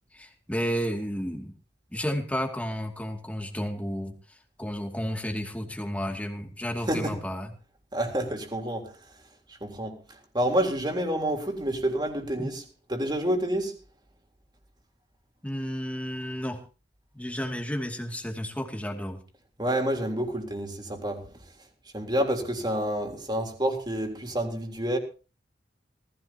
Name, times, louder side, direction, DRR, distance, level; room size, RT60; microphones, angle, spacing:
voice 1, 0.1-1.5 1.9-4.1 4.6-7.5 12.4-12.5 15.4-16.6 17.1-19.2, equal, 10° left, 2.5 m, -32 dB
voice 2, 7.9-8.9 9.6-10.0 10.3-12.6 12.9-13.7 19.6-21.3 21.9-25.0, right 1 dB, 25° right, 3.6 m, -28 dB
19.5 x 15.5 x 2.9 m
head